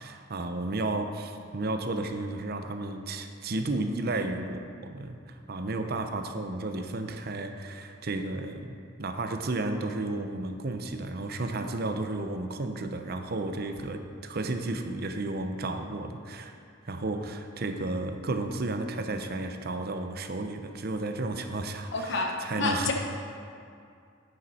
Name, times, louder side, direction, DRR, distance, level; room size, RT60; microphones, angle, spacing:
voice 1, 0.0-16.5 16.9-22.9, right 2 dB, 50° right, 6 dB, 0.7 m, -33 dB
voice 2, 21.9-22.9, left 3 dB, 60° left, 2 dB, 1.0 m, -29 dB
9.4 x 9.1 x 4.3 m, 2.3 s
head